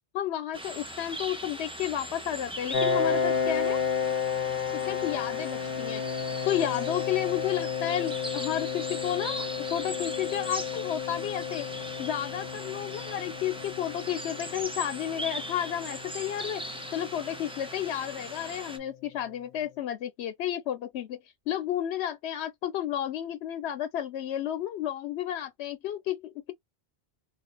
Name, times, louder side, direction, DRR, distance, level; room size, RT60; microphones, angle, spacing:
voice 1, 0.1-3.8 4.9-6.0 6.4-9.4 9.7-11.7 12.0-16.6 16.9-21.2 21.5-26.5, left 11 dB, 85° left, 0.8 m, -32 dB
sound 1, 0.5-18.8, equal, 5° right, 0.5 m, -40 dB
Piano, 2.7-18.1, left 6 dB, 55° left, 0.8 m, -32 dB
3.1 x 2.4 x 3.8 m
omnidirectional pair, 1.1 m